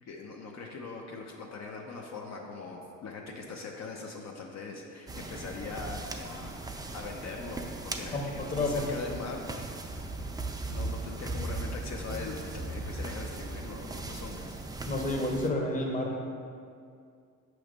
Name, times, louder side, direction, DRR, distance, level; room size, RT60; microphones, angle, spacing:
voice 1, 0.0-6.6 6.9-10.0 10.6-14.6, left 4 dB, 60° left, 0 dB, 0.6 m, -41 dB
sound 1, 5.1-15.5, right 2 dB, 15° right, 0.4 m, -38 dB
voice 2, 8.1-8.9 14.9-16.2, left 2 dB, 25° left, 1 dB, 0.8 m, -30 dB
5.9 x 3.1 x 5.1 m, 2.3 s
cardioid pair, 90°, 30 cm